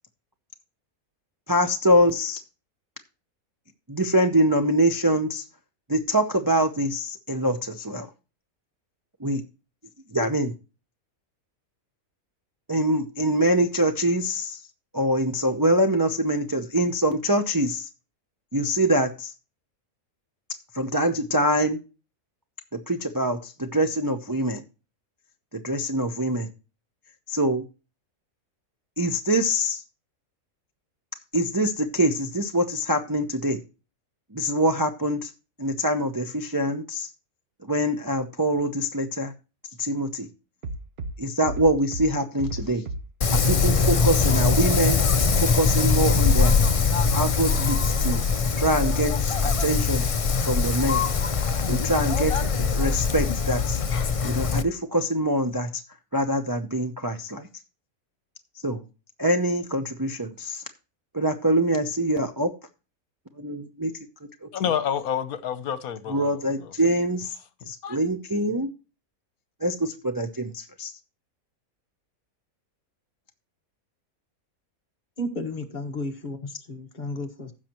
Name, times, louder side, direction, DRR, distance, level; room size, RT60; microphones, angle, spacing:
voice 1, 1.5-2.4 3.9-5.4 5.9-8.1 9.2-9.4 10.1-10.5 12.7-14.6 14.9-17.9 18.5-19.3 20.7-21.8 22.7-24.6 25.6-26.5 27.3-27.6 29.0-29.8 31.3-33.6 34.3-35.3 35.6-37.1 37.6-39.3 39.8-40.3 41.2-42.8 43.3-45.0 45.4-46.5 47.1-48.2 48.6-50.0 50.4-51.0 51.6-52.3 52.7-53.8 54.2-55.8 56.1-57.5 58.6-58.8 59.2-60.6 61.1-62.5 63.4-63.9 64.4-64.5 66.1-67.3 67.7-68.7 69.6-70.9, right 1 dB, 25° right, 0.5 m, -24 dB
Bass drum, 40.6-41.1 41.4-42.1 42.4-43.0 43.3-43.9 44.3-44.9 45.2-45.8 46.1-46.7 47.1-47.7 48.0-48.1, right 2 dB, 45° right, 0.9 m, -32 dB
Wind, 43.2-54.6, left 5 dB, 60° left, 0.3 m, -22 dB
voice 2, 64.5-66.7 67.8-68.0, left 8 dB, 80° left, 1.3 m, -29 dB
voice 3, 75.2-77.5, left 1 dB, 35° left, 1.5 m, -33 dB
15.5 x 6.3 x 3.0 m
omnidirectional pair, 1.5 m